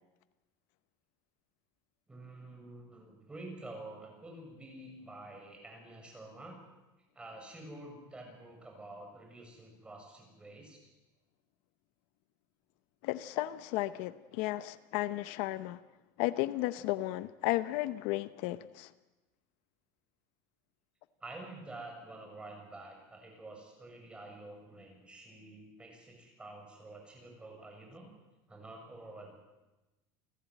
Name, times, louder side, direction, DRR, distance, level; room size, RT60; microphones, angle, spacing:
voice 1, 2.1-6.6 7.1-10.8 21.2-28.1 28.5-29.3, right 2 dB, 10° right, 7.1 m, -49 dB
voice 2, 13.0-15.8 16.2-18.9, left 17 dB, 70° left, 0.9 m, -34 dB
29.0 x 16.0 x 9.2 m
cardioid pair, 150°, 10 cm